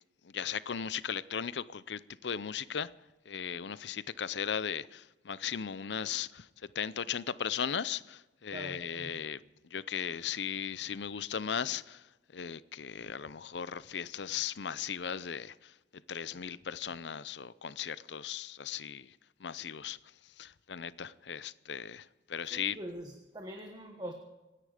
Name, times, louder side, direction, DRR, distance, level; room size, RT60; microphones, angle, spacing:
voice 1, 0.3-2.9 3.3-6.5 6.8-9.4 9.7-12.0 12.3-15.5 16.1-19.1 19.4-20.0 20.4-22.0 22.3-22.8, left 8 dB, 75° left, 0.6 m, -37 dB
voice 2, 8.5-9.2 22.5-24.1, right 1 dB, 25° right, 1.3 m, -43 dB
26.5 x 10.0 x 5.0 m
head